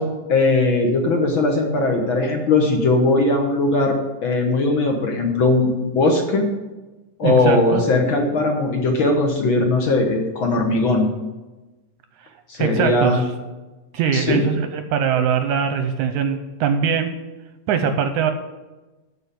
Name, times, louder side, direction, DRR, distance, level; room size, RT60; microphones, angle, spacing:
voice 1, 0.0-6.4 7.2-11.1 12.5-13.2 14.1-14.4, left 2 dB, 60° left, 3 dB, 1.3 m, -19 dB
voice 2, 7.2-7.8 12.2-12.3 12.6-13.2 13.9-17.1 17.7-18.3, right 7 dB, 75° right, 7 dB, 1.9 m, -21 dB
12.5 x 4.9 x 8.2 m, 1.1 s
omnidirectional pair, 3.9 m